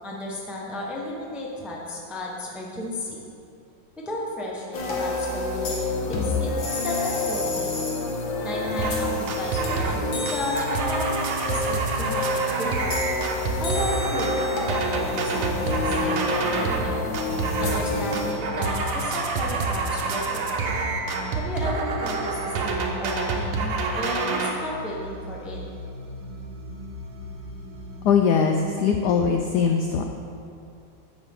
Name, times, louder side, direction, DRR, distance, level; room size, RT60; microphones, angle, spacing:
voice 1, 0.0-3.2 4.0-7.7 8.4-11.1 11.5-12.9 13.6-17.1 17.6-20.4 21.3-25.6, left 1 dB, ahead, -3 dB, 0.5 m, -33 dB
sound 1, 4.7-18.3, left 2 dB, 65° left, 2.0 m, -28 dB
sound 2, 8.8-9.0 9.3-10.0 10.3-16.9 17.1-17.9 18.1-24.5, right 4 dB, 85° right, 1.8 m, -27 dB
sound 3, 15.0-28.2, right 1 dB, 65° right, 1.7 m, -39 dB
voice 2, 28.0-30.0, left 6 dB, 85° left, 4 dB, 0.9 m, -21 dB
10.5 x 7.3 x 3.7 m, 2.5 s
omnidirectional pair, 2.3 m